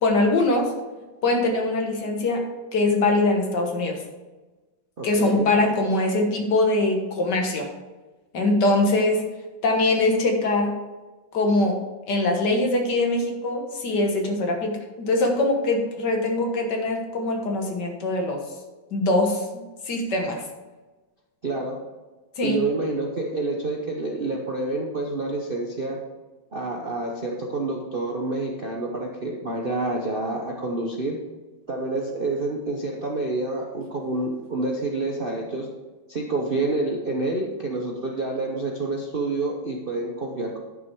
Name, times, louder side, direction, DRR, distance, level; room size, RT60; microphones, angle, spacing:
voice 1, 0.0-0.7 1.2-2.5 2.7-4.0 5.0-7.7 8.3-9.2 9.6-10.8 11.3-18.4 18.9-20.5 22.4-22.6, left 2 dB, 60° left, 2 dB, 1.9 m, -22 dB
voice 2, 5.0-5.5 21.4-21.8 22.4-26.0 26.5-31.2 31.7-35.7 36.1-40.6, right 2 dB, 45° right, 0 dB, 0.7 m, -28 dB
10.5 x 6.1 x 4.5 m, 1.2 s
omnidirectional pair, 2.1 m